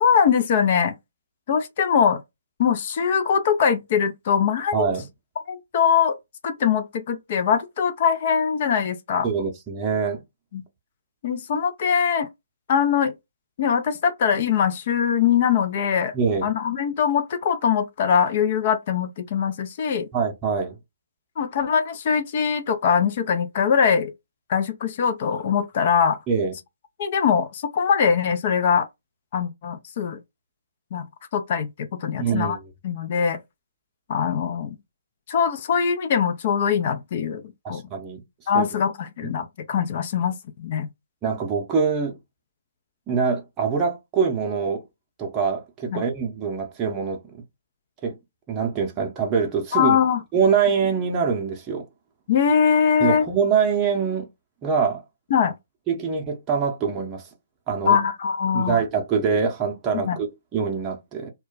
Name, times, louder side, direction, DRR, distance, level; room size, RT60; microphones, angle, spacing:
voice 1, 0.0-0.9 1.5-2.2 2.6-4.9 5.5-6.2 6.4-9.3 10.5-10.6 11.2-12.3 12.7-13.1 13.6-16.1 16.4-20.1 21.4-24.1 24.5-26.2 27.0-28.9 29.3-30.2 30.9-31.0 31.3-32.6 32.8-33.4 34.1-34.8 35.3-37.4 37.7-37.8 38.5-40.9 45.9-46.0 49.7-50.2 52.3-53.3 55.3-55.5 57.9-58.8 59.9-60.2, left 7 dB, 40° left, 0.4 m, -22 dB
voice 2, 4.7-5.1 9.2-10.2 16.1-16.5 20.1-20.7 26.3-26.5 32.2-32.6 37.6-38.2 38.5-38.7 41.2-42.2 43.1-44.8 45.2-47.4 48.0-48.2 48.5-50.0 50.3-51.9 53.0-54.3 54.6-55.0 55.9-57.2 57.7-58.0 58.5-61.3, right 6 dB, 20° right, 0.6 m, -24 dB
2.2 x 2.1 x 3.8 m
figure-of-eight pair, 140°, 0 cm